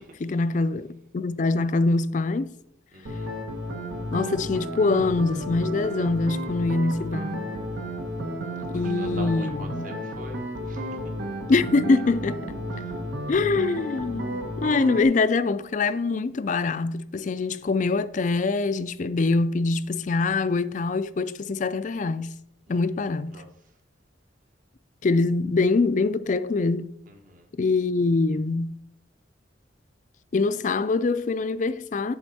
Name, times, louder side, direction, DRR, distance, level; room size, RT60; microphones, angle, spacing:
voice 1, 0.2-2.5 4.1-7.5 8.7-9.9 11.5-12.6 13.3-22.3 22.7-23.4 25.0-27.0 27.6-28.7 30.3-32.1, left 3 dB, 40° left, 0.4 m, -24 dB
voice 2, 2.9-3.3 8.5-10.4 10.7-11.0 22.7-22.8 23.3-23.5 27.1-27.5, right 1 dB, 45° right, 1.3 m, -43 dB
sound 1, 3.1-15.1, equal, 70° right, 1.3 m, -32 dB
10.5 x 4.3 x 4.2 m
head